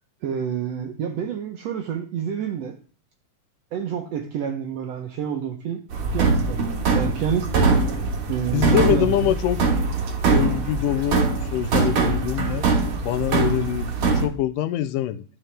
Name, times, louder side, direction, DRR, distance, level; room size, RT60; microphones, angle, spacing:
voice 1, 0.2-2.8 3.7-5.8 6.1-7.5 8.3-9.3, right 8 dB, 75° right, 1.5 m, -28 dB
sound 1, 5.9-14.3, right 4 dB, 55° right, 1.8 m, -22 dB
voice 2, 8.5-9.6 10.3-12.7 13.0-15.2, left 12 dB, 90° left, 2.2 m, -24 dB
11.0 x 6.0 x 3.3 m
omnidirectional pair, 3.8 m